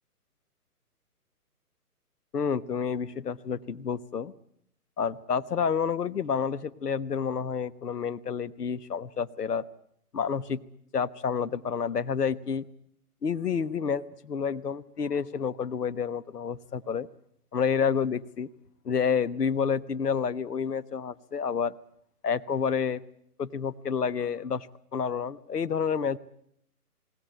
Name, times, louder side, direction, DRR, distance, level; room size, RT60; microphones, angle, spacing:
voice 1, 2.3-4.3 5.0-9.7 10.1-10.6 10.9-12.7 13.2-17.1 17.5-18.5 18.8-21.7 22.2-23.0 23.4-24.7 24.9-26.2, left 6 dB, 80° left, 15 dB, 1.3 m, -29 dB
20.0 x 18.0 x 9.1 m, 0.71 s
hypercardioid pair, 150°, 46 cm